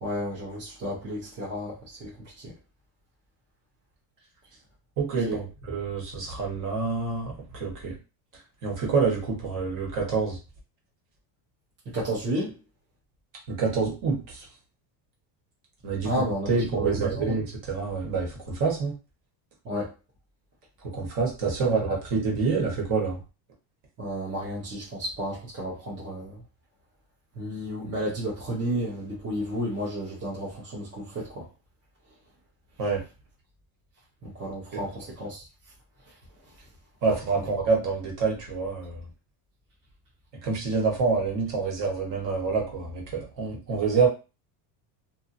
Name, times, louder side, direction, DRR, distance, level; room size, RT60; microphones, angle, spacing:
voice 1, 0.0-2.5 5.2-5.4 11.9-12.5 16.0-17.4 19.6-19.9 21.6-22.0 24.0-26.4 27.3-31.4 34.2-35.5 37.3-37.5, equal, 25° right, -6 dB, 0.8 m, -32 dB
voice 2, 5.0-7.9 8.6-10.4 13.5-14.4 15.8-16.1 16.5-18.9 20.9-23.2 32.8-33.0 37.0-39.0 40.4-44.1, right 4 dB, 40° right, -1 dB, 1.3 m, -27 dB
2.6 x 2.6 x 2.6 m, 0.30 s
cardioid pair, 155°, 48 cm